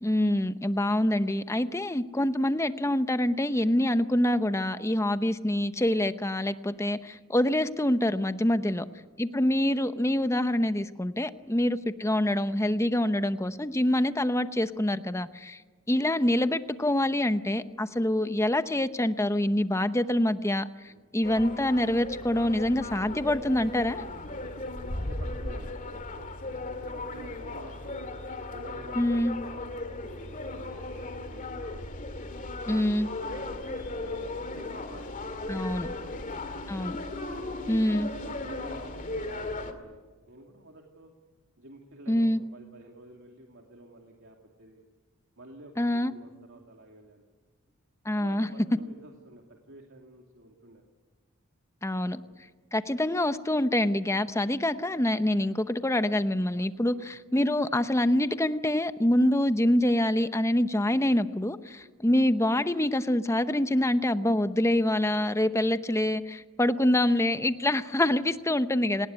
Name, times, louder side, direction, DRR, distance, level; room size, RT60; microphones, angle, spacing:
voice 1, 0.0-8.8 9.2-15.6 15.9-24.0 28.9-29.3 32.7-33.1 35.5-35.9 36.7-37.0 37.7-38.1 42.1-42.4 45.8-46.1 48.0-48.5 51.8-52.2 52.7-69.1, left 1 dB, 15° left, 11 dB, 0.8 m, -26 dB
voice 2, 8.6-9.1 11.4-11.6 20.8-21.1 24.9-26.3 26.7-28.1 28.5-31.9 32.6-36.7 37.3-40.0 40.3-41.1 41.6-44.8 45.4-47.3 48.1-50.8 52.1-52.4 56.9-57.1 61.8-62.0 67.5-67.7 68.3-68.4, right 1 dB, 60° right, 1 dB, 2.8 m, -50 dB
sound 1, 21.2-39.7, left 2 dB, 40° left, 2.2 m, -37 dB
28.0 x 19.5 x 9.6 m, 1.4 s
head